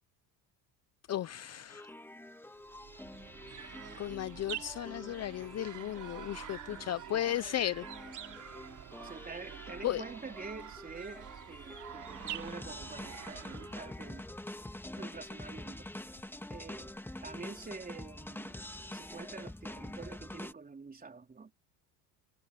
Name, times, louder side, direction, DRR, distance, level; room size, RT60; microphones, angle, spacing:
voice 1, 1.1-1.9 4.0-7.8 9.8-10.0, left 12 dB, 35° left, 0.7 m, -35 dB
sound 1, 1.7-20.5, left 1 dB, 5° left, 2.0 m, -46 dB
sound 2, 2.6-14.1, right 10 dB, 40° right, 3.9 m, -47 dB
voice 2, 9.0-14.3 15.0-15.9 16.5-16.9 17.2-18.6 18.9-21.5, right 4 dB, 20° right, 3.5 m, -47 dB
supercardioid pair, 100°, 44 cm